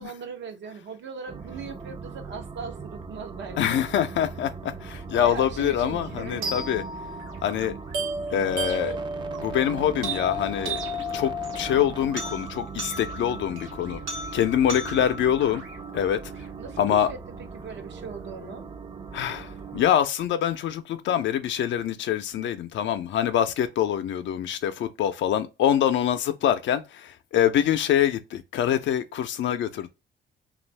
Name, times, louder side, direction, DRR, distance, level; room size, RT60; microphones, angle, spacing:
voice 1, 0.0-3.8 5.1-6.5 16.6-18.7 22.3-22.5, right 5 dB, 65° right, 0.7 m, -39 dB
sound 1, 1.3-19.9, right 5 dB, 25° right, 0.4 m, -40 dB
voice 2, 3.6-6.8 7.4-7.7 8.3-9.0 9.4-10.8 11.1-14.0 14.3-15.6 15.9-16.3 16.8-17.1 19.1-29.9, left 10 dB, 70° left, 0.5 m, -25 dB
sound 2, 6.4-16.4, right 1 dB, 90° right, 1.0 m, -34 dB
2.6 x 2.4 x 3.2 m
cardioid pair, 90°, 20 cm